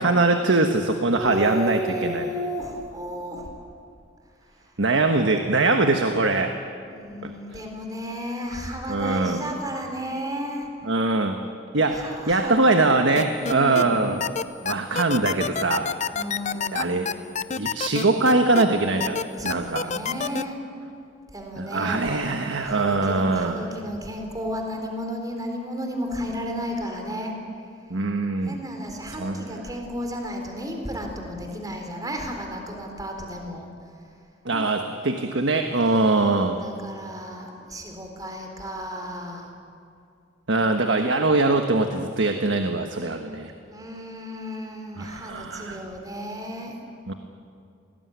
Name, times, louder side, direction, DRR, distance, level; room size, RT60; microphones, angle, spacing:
voice 1, 0.0-2.3 4.8-6.5 7.2-7.3 8.9-9.4 10.8-11.4 11.7-14.2 14.6-15.9 16.7-17.1 17.5-19.9 21.6-23.7 27.9-28.6 29.2-29.6 34.4-36.6 40.5-43.5 45.0-45.8 47.1-47.2, right 2 dB, 80° right, 5 dB, 1.4 m, -22 dB
voice 2, 1.1-3.5 4.5-4.7 6.8-10.7 11.9-12.8 13.3-14.0 16.1-17.2 19.3-20.6 21.3-27.3 28.4-33.7 35.1-35.3 35.8-39.5 43.7-46.8, equal, 20° right, 3 dB, 3.9 m, -33 dB
sound 1, 13.2-13.8 14.2-18.6 19.0-20.4, left 6 dB, 40° left, 0.7 m, -27 dB
26.0 x 19.5 x 9.5 m, 2.4 s
head